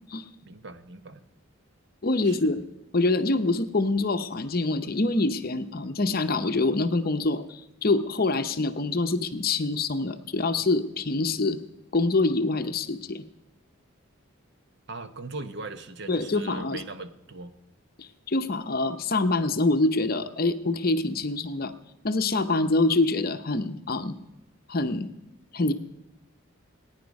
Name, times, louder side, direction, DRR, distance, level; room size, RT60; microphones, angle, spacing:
voice 1, 0.4-1.2 2.2-2.6 14.9-17.5, right 3 dB, 50° right, 10 dB, 0.8 m, -40 dB
voice 2, 2.0-2.6 2.9-11.6 11.9-13.2 16.1-16.8 18.0-21.7 22.0-24.2 24.7-25.1 25.5-25.7, left 2 dB, 45° left, 9 dB, 0.7 m, -25 dB
19.5 x 9.7 x 5.3 m, 0.95 s
head